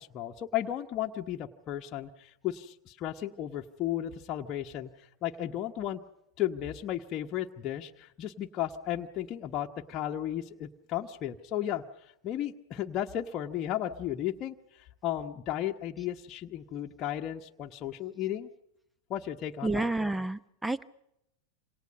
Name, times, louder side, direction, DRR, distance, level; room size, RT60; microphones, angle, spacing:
voice 1, 0.0-4.9 5.2-6.0 6.4-11.8 12.2-14.5 15.0-18.5 19.1-19.8, left 12 dB, 35° left, 2 dB, 1.2 m, -34 dB
voice 2, 19.6-20.8, right 2 dB, 5° right, 17 dB, 0.9 m, -30 dB
27.5 x 27.0 x 5.4 m, 0.82 s
figure-of-eight pair, 90°, 0 cm